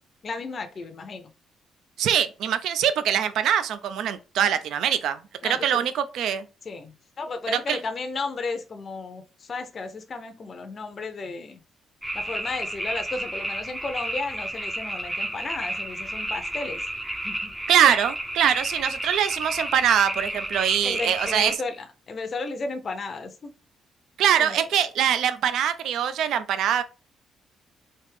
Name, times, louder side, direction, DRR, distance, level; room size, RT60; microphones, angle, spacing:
voice 1, 0.2-1.3 5.4-5.8 6.6-11.6 12.1-16.8 17.2-17.5 20.8-23.5 24.3-24.6, left 3 dB, 45° left, 0.5 m, -34 dB
voice 2, 2.0-6.4 7.5-7.8 17.7-21.6 24.2-26.8, right 9 dB, 80° right, 0.3 m, -23 dB
sound 1, 12.0-21.6, right 1 dB, 5° right, 0.4 m, -31 dB
3.3 x 2.6 x 3.3 m
cardioid pair, 90°, 0 cm